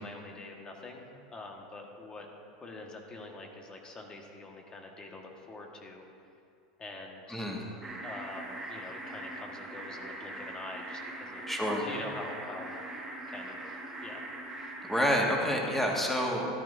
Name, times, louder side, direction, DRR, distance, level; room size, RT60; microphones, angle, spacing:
voice 1, 0.0-2.3 2.6-6.1 6.8-7.5 8.0-11.5 11.8-12.8 13.3-14.3 14.6-14.7, left 2 dB, 20° left, 1 dB, 1.6 m, -45 dB
voice 2, 7.3-7.6 11.5-11.8 14.9-16.5, equal, 5° left, -2 dB, 1.9 m, -28 dB
sound 1, 7.8-15.0, right 2 dB, 10° right, 1.5 m, -42 dB
13.5 x 11.5 x 2.7 m, 2.4 s
hypercardioid pair, 110°, 4 cm